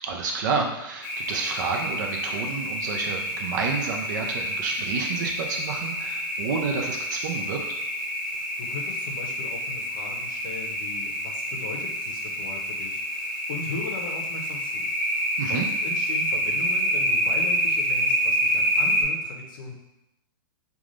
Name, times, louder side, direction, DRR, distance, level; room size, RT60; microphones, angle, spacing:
voice 1, 0.0-7.6 15.4-15.7, right 5 dB, 50° right, 2 dB, 0.5 m, -29 dB
sound 1, 1.0-19.0, equal, 20° left, 0.7 m, -28 dB
voice 2, 8.3-19.7, left 4 dB, 60° left, 1 dB, 0.6 m, -38 dB
3.1 x 2.3 x 2.5 m, 0.96 s
hypercardioid pair, 160°, 12 cm